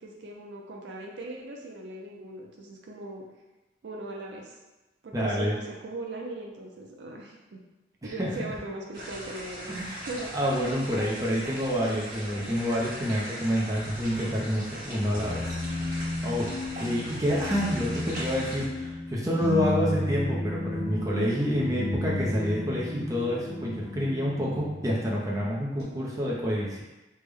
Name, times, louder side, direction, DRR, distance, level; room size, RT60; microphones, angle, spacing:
voice 1, 0.0-3.2 3.8-4.5 5.0-7.6 8.0-10.3, right 2 dB, 75° right, 0 dB, 0.4 m, -39 dB
voice 2, 5.1-5.5 8.0-8.3 9.7-10.0 10.3-15.6 16.2-16.5 16.8-26.8, equal, 20° right, -5 dB, 0.4 m, -28 dB
sound 1, 8.9-18.7, equal, 45° right, 1.1 m, -40 dB
sound 2, 15.1-25.8, left 2 dB, 55° left, 0.8 m, -33 dB
3.2 x 2.1 x 3.4 m, 1.1 s
head